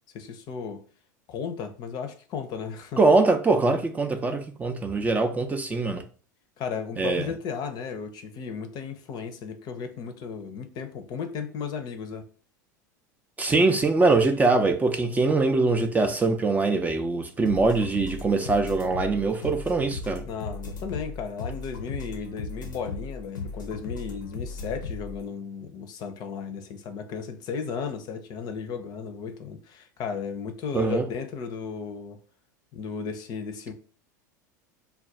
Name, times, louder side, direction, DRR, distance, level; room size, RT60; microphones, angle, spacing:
voice 1, 0.1-0.8 1.3-3.0 6.6-12.2 20.3-32.2 32.7-33.7, left 6 dB, 45° left, 0.6 m, -35 dB
voice 2, 3.0-6.0 7.0-7.3 13.4-20.2 30.7-31.0, right 3 dB, 15° right, 0.4 m, -23 dB
sound 1, 17.5-25.2, left 4 dB, 85° left, 0.6 m, -37 dB
2.4 x 2.2 x 4.0 m
hypercardioid pair, 90°, 10 cm